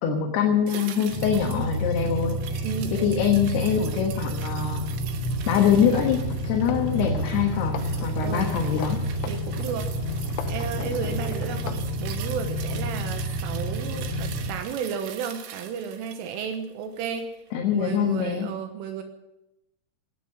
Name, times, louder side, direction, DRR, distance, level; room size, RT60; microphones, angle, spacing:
voice 1, 0.0-2.6 2.9-4.8 5.5-6.2 6.4-9.0 17.5-18.5, left 8 dB, 65° left, 2 dB, 2.9 m, -24 dB
sound 1, 0.7-17.2 17.5-17.6, right 9 dB, 70° right, 2.9 m, -43 dB
sound 2, 1.1-14.5, right 1 dB, 45° left, 2.3 m, -30 dB
voice 2, 2.6-3.2 8.2-8.6 9.3-9.9 10.5-17.4 17.7-19.0, right 7 dB, 85° right, 6 dB, 3.6 m, -33 dB
sound 3, 5.6-11.8, left 10 dB, 85° left, 2.4 m, -38 dB
19.0 x 9.4 x 7.4 m, 0.90 s
omnidirectional pair, 5.8 m